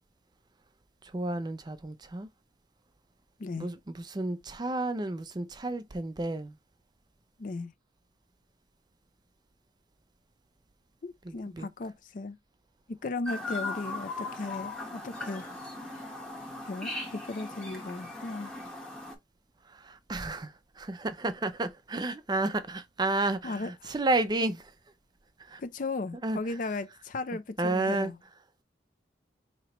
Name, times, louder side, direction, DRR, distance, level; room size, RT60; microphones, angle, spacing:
voice 1, 1.1-2.3 3.6-6.5 11.3-11.7 19.7-24.7 25.5-25.6 26.2-26.4 27.6-28.1, right 2 dB, 25° right, 0.4 m, -31 dB
voice 2, 7.4-7.7 11.0-12.4 12.9-15.4 16.6-18.5 23.4-23.9 25.6-28.2, left 3 dB, 45° left, 0.4 m, -36 dB
Chirp tweet, 13.3-19.1, left 2 dB, 5° left, 1.1 m, -38 dB
4.5 x 2.8 x 2.9 m
head